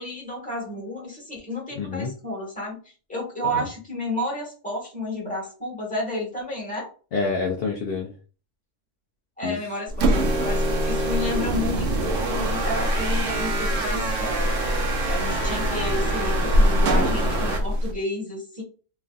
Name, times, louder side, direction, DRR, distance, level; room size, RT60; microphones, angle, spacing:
voice 1, 0.0-2.8 3.1-6.9 9.4-18.6, left 1 dB, 5° left, -2 dB, 1.3 m, -31 dB
voice 2, 1.8-2.1 3.5-3.7 7.1-8.1 9.4-9.6 16.9-17.3, left 4 dB, 65° left, 1 dB, 0.7 m, -28 dB
sound 1, 9.9-18.0, equal, 85° right, 0.9 m, -25 dB
sound 2, 10.1-17.6, right 2 dB, 55° right, 0.9 m, -27 dB
3.0 x 2.5 x 2.3 m, 0.37 s
omnidirectional pair, 1.2 m